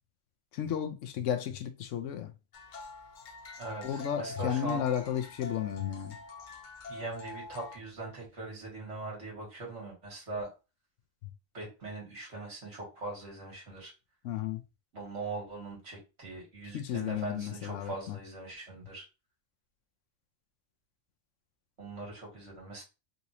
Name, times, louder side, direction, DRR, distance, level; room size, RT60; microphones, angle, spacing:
voice 1, 0.5-2.3 3.8-6.2 14.2-14.6 16.7-18.2, left 10 dB, 75° left, 0.9 m, -33 dB
sound 1, 2.5-7.8, left 2 dB, 50° left, 0.6 m, -45 dB
voice 2, 3.6-4.8 6.9-10.5 11.5-13.9 14.9-19.0 21.8-22.8, right 2 dB, 65° right, 2.0 m, -41 dB
3.9 x 2.6 x 2.8 m
omnidirectional pair, 1.3 m